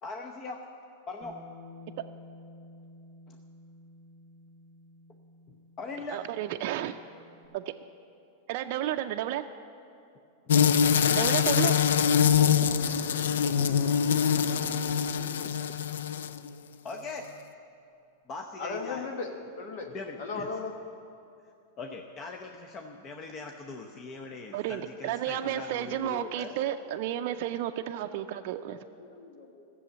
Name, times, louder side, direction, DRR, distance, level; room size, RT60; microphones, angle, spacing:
voice 1, 0.0-0.6 1.1-1.4 3.3-3.4 5.5-6.2 8.6-8.7 14.3-14.5 15.4-15.9 16.8-17.3 18.3-19.1 19.9-20.5 21.8-26.3, left 3 dB, 35° left, 3 dB, 0.8 m, -41 dB
Bass guitar, 1.2-7.5, left 2 dB, 50° left, 1.9 m, -52 dB
voice 2, 6.1-7.0 7.5-7.7 8.5-9.5 11.1-11.8 24.5-28.8, right 12 dB, 55° right, 5 dB, 0.4 m, -32 dB
sound 1, 10.5-16.5, left 7 dB, 80° left, 0.4 m, -24 dB
sound 2, 11.9-16.6, right 5 dB, 5° right, 2.0 m, -46 dB
voice 3, 18.6-19.3 19.6-19.9 20.2-20.7 26.3-26.5 28.3-29.6, left 4 dB, 65° left, 3 dB, 1.4 m, -37 dB
14.0 x 7.0 x 8.7 m, 2.5 s
hypercardioid pair, 130°, 0 cm